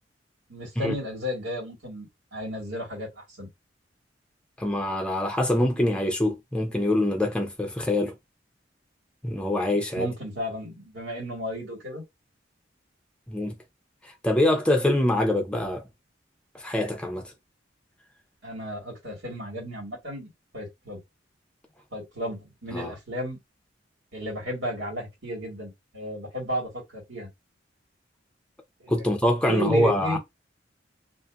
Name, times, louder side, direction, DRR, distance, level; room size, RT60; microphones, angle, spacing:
voice 1, 0.5-3.5 10.0-12.0 18.4-21.0 21.9-23.4 24.1-27.3 28.8-29.0 29.5-30.2, equal, 85° right, 1.6 m, -33 dB
voice 2, 4.6-8.1 9.2-10.1 13.3-13.6 14.0-15.8 16.5-17.3 22.7-22.9 28.9-30.2, left 1 dB, 5° left, 0.6 m, -24 dB
2.6 x 2.5 x 2.3 m
head